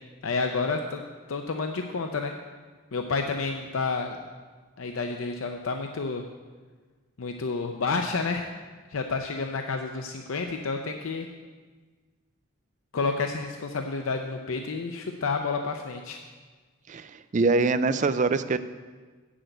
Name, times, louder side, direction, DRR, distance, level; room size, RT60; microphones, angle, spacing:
voice 1, 0.2-1.0 1.3-2.4 2.9-4.2 4.8-6.2 7.2-8.5 8.9-11.3 12.9-16.2, left 4 dB, 75° left, 4 dB, 0.6 m, -30 dB
voice 2, 16.9-18.6, right 3 dB, 35° right, 12 dB, 0.4 m, -24 dB
7.8 x 6.3 x 7.9 m, 1.4 s
head